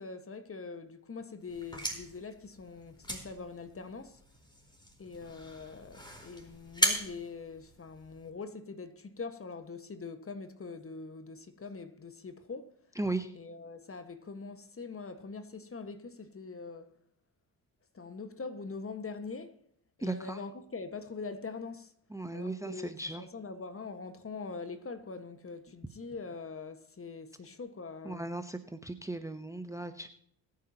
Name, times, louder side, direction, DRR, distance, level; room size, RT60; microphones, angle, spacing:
voice 1, 0.0-4.2 5.0-12.7 13.3-17.0 17.9-19.6 20.0-21.9 22.3-28.3, left 4 dB, 25° left, 1.7 m, -43 dB
sound 1, 1.5-8.3, equal, 10° left, 4.3 m, -37 dB
voice 2, 13.0-13.3 20.0-20.4 22.1-23.2 28.0-30.1, right 2 dB, 5° right, 1.0 m, -36 dB
21.5 x 9.5 x 3.0 m
hypercardioid pair, 55°, 49 cm